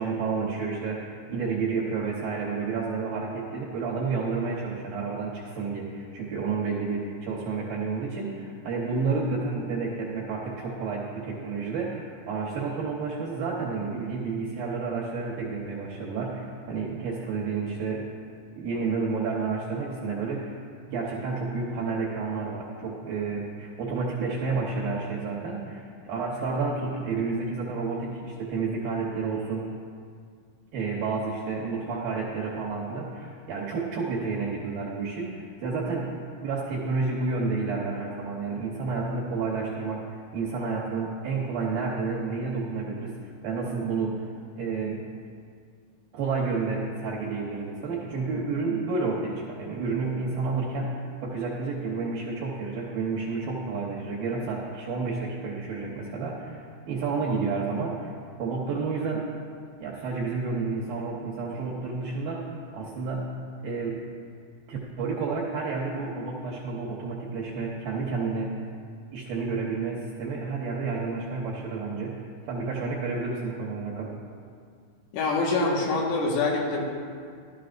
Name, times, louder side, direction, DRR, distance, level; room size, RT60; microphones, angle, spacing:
voice 1, 0.0-18.1 18.6-20.6 20.9-29.7 30.7-36.1 36.4-44.3 44.6-45.0 46.1-51.0 51.2-59.3 59.8-63.3 63.6-64.0 64.7-68.5 69.1-74.1, right 4 dB, 75° right, -4 dB, 2.2 m, -30 dB
voice 2, 75.1-76.8, left 3 dB, 80° left, -2 dB, 4.0 m, -25 dB
15.5 x 12.5 x 2.5 m, 2.2 s
omnidirectional pair, 5.5 m